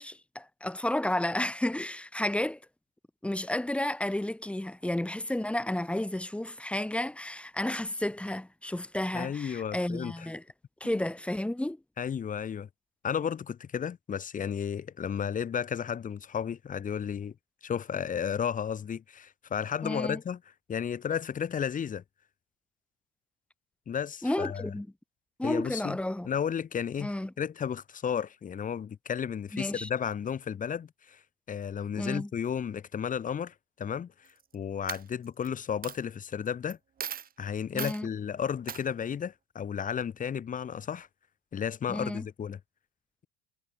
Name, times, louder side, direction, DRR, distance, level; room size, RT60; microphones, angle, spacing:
voice 1, 0.0-2.6 3.2-10.4 10.8-11.8 19.8-20.2 24.2-24.9 25.4-26.3 27.0-27.3 29.5-29.9 32.0-32.3 37.7-38.1 41.9-42.3, left 1 dB, 5° left, 1.3 m, -32 dB
voice 2, 9.1-10.1 10.8-10.9 12.0-12.7 13.0-17.3 17.6-20.4 20.7-22.0 23.9-24.7 25.4-26.0 26.3-27.1 27.4-31.2 31.5-34.1 34.5-36.8 37.4-41.1 41.5-42.6, left 8 dB, 25° left, 1.7 m, -33 dB
Coin (dropping), 34.3-34.5 34.9-35.5 35.8-36.0 36.7-36.8 37.0-37.3 37.8-38.0 38.7-38.8, right 8 dB, 30° right, 1.7 m, -37 dB
supercardioid pair, 130°, 31 cm